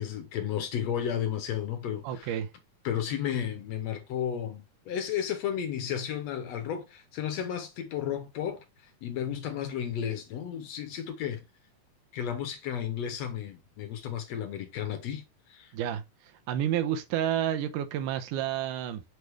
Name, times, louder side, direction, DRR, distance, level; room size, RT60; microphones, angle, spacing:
voice 1, 0.0-2.4 2.9-11.4 12.1-15.7, left 9 dB, 70° left, 1.7 m, -33 dB
voice 2, 2.0-2.5 15.7-19.0, right 10 dB, 85° right, 2.2 m, -30 dB
6.2 x 3.3 x 4.6 m
omnidirectional pair, 3.6 m